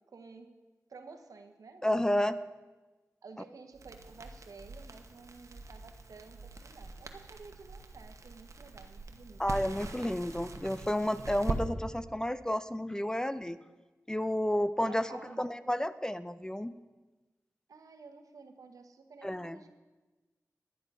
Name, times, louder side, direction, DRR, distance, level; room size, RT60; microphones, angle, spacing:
voice 1, 0.1-0.5 0.9-2.5 3.2-9.4 14.8-15.5 17.7-19.7, right 4 dB, 90° right, 7 dB, 1.0 m, -52 dB
voice 2, 1.8-2.3 9.4-13.6 14.1-16.8 19.2-19.6, left 1 dB, 10° left, 14 dB, 0.4 m, -31 dB
Crackle, 3.7-11.6, right 3 dB, 60° right, 1.0 m, -42 dB
10.5 x 10.5 x 5.5 m, 1.2 s
wide cardioid pair, 70°, 6 cm